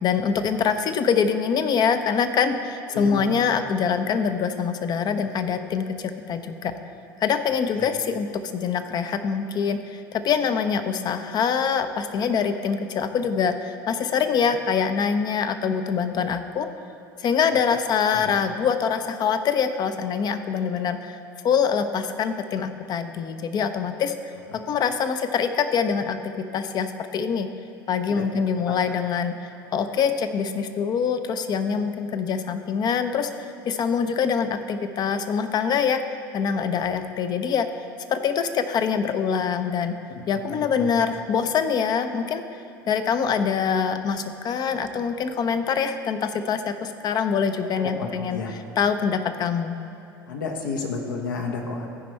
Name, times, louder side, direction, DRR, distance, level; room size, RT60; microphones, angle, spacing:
voice 1, 0.0-6.7 7.2-16.7 17.2-21.2 21.4-27.5 27.9-36.0 36.3-37.7 38.1-40.0 40.3-49.7, left 6 dB, 40° left, 9 dB, 0.6 m, -24 dB
voice 2, 2.9-3.2 7.8-7.9 18.1-18.3 28.1-28.2 40.8-40.9 47.8-48.5 50.3-51.9, left 4 dB, 70° left, 2 dB, 1.1 m, -30 dB
14.5 x 5.1 x 4.5 m, 2.8 s
figure-of-eight pair, 70°, 11 cm